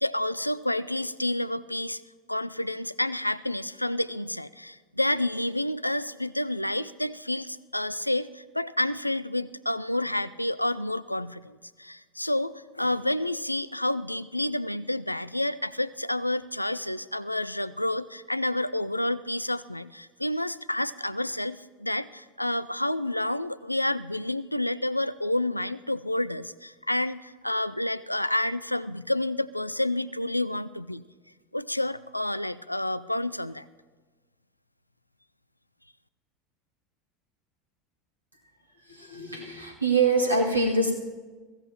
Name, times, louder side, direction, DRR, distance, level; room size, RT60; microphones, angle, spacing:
voice 1, 0.0-2.0 2.3-31.0 31.5-33.7, left 1 dB, 90° left, 17 dB, 0.3 m, -29 dB
voice 2, 38.9-40.9, right 3 dB, 85° right, 0 dB, 2.1 m, -24 dB
22.0 x 15.5 x 2.9 m, 1.4 s
figure-of-eight pair, 75°, 0 cm